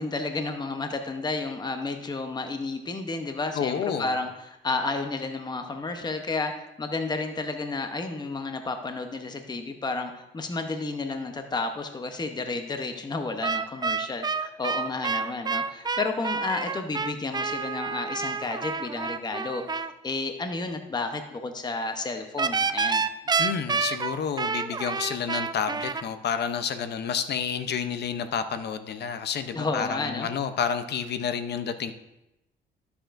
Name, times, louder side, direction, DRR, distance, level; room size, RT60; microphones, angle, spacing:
voice 1, 0.0-23.0 29.5-30.3, left 3 dB, 20° left, 6 dB, 0.8 m, -31 dB
voice 2, 3.5-4.2 23.4-31.9, left 7 dB, 55° left, 10 dB, 0.7 m, -30 dB
sound 1, 13.4-19.9 22.4-26.0, right 5 dB, 20° right, 0.4 m, -28 dB
12.5 x 6.9 x 2.6 m, 0.92 s
cardioid pair, 90°, 20 cm